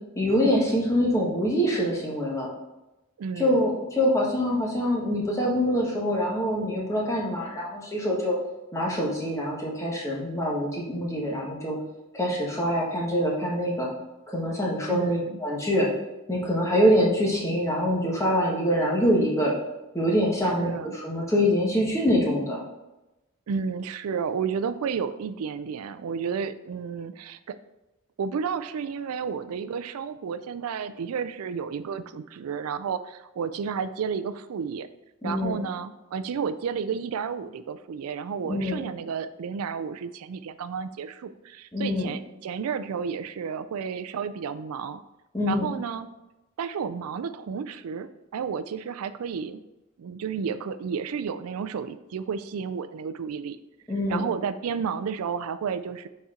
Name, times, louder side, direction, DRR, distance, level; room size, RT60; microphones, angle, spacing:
voice 1, 0.2-2.5 3.4-8.3 8.7-11.8 12.1-13.9 14.3-15.9 16.3-19.5 19.9-22.6 35.2-35.6 38.4-38.9 41.7-42.1 45.3-45.7 53.9-54.3, equal, 15° left, -4 dB, 1.3 m, -25 dB
voice 2, 3.2-3.7 14.9-15.4 20.4-20.9 23.5-27.6 28.2-34.9 35.2-45.0 45.5-46.1 46.6-49.6 50.0-53.6 54.1-56.1, right 6 dB, 90° right, 12 dB, 0.4 m, -32 dB
7.0 x 4.3 x 3.7 m, 1.0 s
head